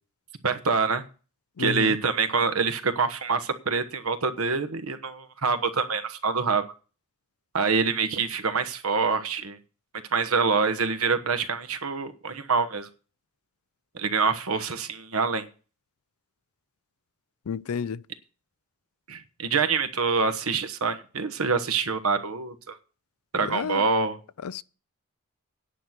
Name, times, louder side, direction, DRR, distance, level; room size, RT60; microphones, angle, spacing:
voice 1, 0.4-1.0 1.6-6.6 7.5-9.6 10.1-12.9 13.9-15.5 19.1-22.7 23.3-24.2, right 5 dB, 75° right, 1.2 m, -26 dB
voice 2, 1.6-2.0 17.5-18.0 23.4-23.9 24.4-24.6, left 6 dB, 85° left, 0.5 m, -31 dB
9.8 x 6.0 x 8.0 m
head